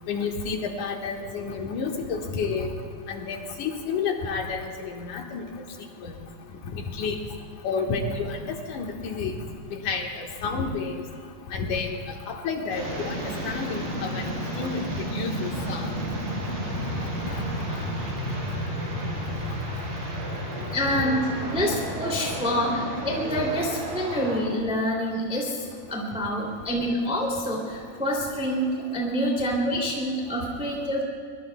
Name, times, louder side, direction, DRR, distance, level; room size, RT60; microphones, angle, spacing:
voice 1, 0.1-2.7 3.1-5.4 6.0-6.1 6.7-7.2 7.6-9.4 9.7-11.0 11.5-11.9 12.3-13.2 13.4-14.3 14.6-14.8 15.1-15.9 17.3-17.4, left 5 dB, 65° left, 1 dB, 2.8 m, -30 dB
sound 1, 12.7-24.4, equal, 70° right, 6.7 m, -32 dB
voice 2, 20.7-31.0, equal, ahead, -3 dB, 2.1 m, -27 dB
24.0 x 22.5 x 2.3 m, 2.2 s
omnidirectional pair, 4.0 m